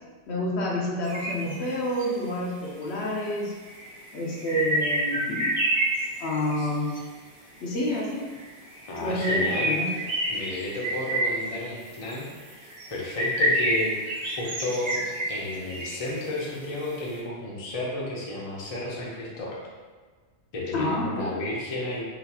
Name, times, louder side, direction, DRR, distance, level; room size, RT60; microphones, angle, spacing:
voice 1, 0.3-3.5 4.1-5.5 6.2-6.9 7.6-8.3 9.0-9.9 20.7-21.2, left 1 dB, 70° left, -3 dB, 0.9 m, -28 dB
sound 1, 1.0-2.1 3.0-3.1 3.4-7.0 7.8-8.0 8.3-17.0, right 1 dB, 45° right, 1.1 m, -29 dB
voice 2, 8.9-9.8 10.3-12.3 12.9-14.0 14.4-15.0 15.3-19.6 20.5-22.0, left 2 dB, 40° left, -4 dB, 0.6 m, -32 dB
3.9 x 2.4 x 2.7 m, 1.4 s
omnidirectional pair, 1.2 m